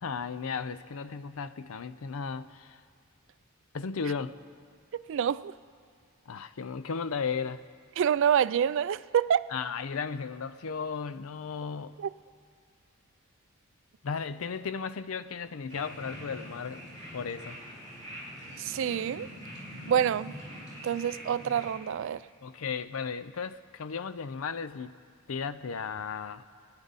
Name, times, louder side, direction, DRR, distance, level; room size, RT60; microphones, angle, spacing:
voice 1, 0.0-2.8 3.7-4.4 6.3-7.6 9.5-12.0 14.0-16.8 17.1-17.6 22.4-24.9 25.3-26.4, left 5 dB, 75° left, 0.5 m, -35 dB
voice 2, 4.9-5.5 8.0-9.4 18.6-19.3 19.9-20.3 20.8-22.2, right 8 dB, 60° right, 0.3 m, -27 dB
sound 1, 15.7-21.7, equal, 15° left, 4.5 m, -44 dB
26.0 x 9.8 x 4.1 m
head